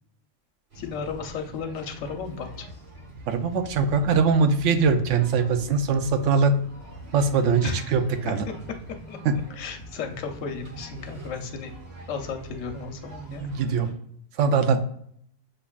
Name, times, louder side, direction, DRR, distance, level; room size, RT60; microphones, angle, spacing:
voice 1, 0.7-2.7 7.6-8.0 9.1-9.2 9.5-11.7 12.1-13.5, left 5 dB, 85° left, 5 dB, 1.1 m, -34 dB
sound 1, 0.7-13.9, right 1 dB, 60° right, 1.4 m, -44 dB
voice 2, 3.3-6.6 7.1-8.5 9.3-9.4 13.4-13.9 14.4-14.8, right 5 dB, 75° right, 9 dB, 0.9 m, -22 dB
6.7 x 2.6 x 2.3 m, 0.65 s
omnidirectional pair, 1.3 m